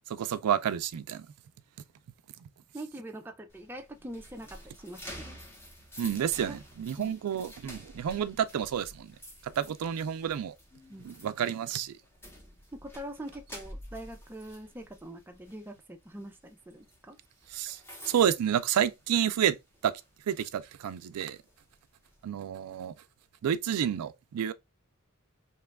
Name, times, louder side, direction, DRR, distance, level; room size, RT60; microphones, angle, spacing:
voice 1, 0.1-1.3 6.0-9.1 9.6-10.5 11.0-11.9 17.5-17.8 18.1-19.6 19.8-19.9 20.3-21.4 22.2-22.9 23.4-24.5, right 9 dB, 85° right, 0.4 m, -29 dB
voice 2, 2.7-5.4 6.5-6.6 7.0-7.1 10.9-11.1 12.7-17.2, right 1 dB, 10° right, 0.3 m, -43 dB
sound 1, 3.5-19.4 19.7-20.0 20.5-22.2, equal, 10° left, 0.7 m, -50 dB
2.9 x 2.3 x 3.3 m
head